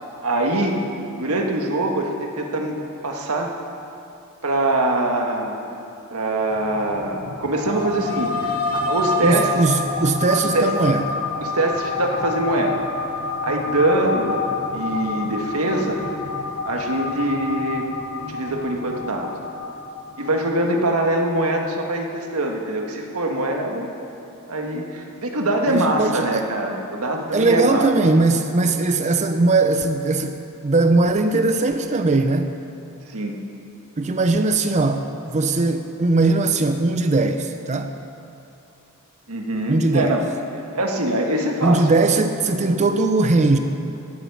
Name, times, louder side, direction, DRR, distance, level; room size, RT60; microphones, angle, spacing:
voice 1, 0.2-0.8 1.2-2.7 3.0-3.5 4.4-5.6 6.1-9.5 10.5-10.7 11.4-12.8 13.4-16.0 16.6-19.3 20.2-23.9 24.5-27.9 33.1-33.3 39.3-40.2 40.7-41.9, right 1 dB, 90° right, 2 dB, 1.7 m, -23 dB
sound 1, 6.5-20.4, left 3 dB, 90° left, 1.2 m, -28 dB
voice 2, 9.2-11.0 25.7-26.4 27.3-32.5 34.0-37.9 39.7-40.2 41.6-43.6, right 3 dB, 35° right, 7 dB, 0.6 m, -19 dB
18.0 x 8.4 x 7.1 m, 2.8 s
head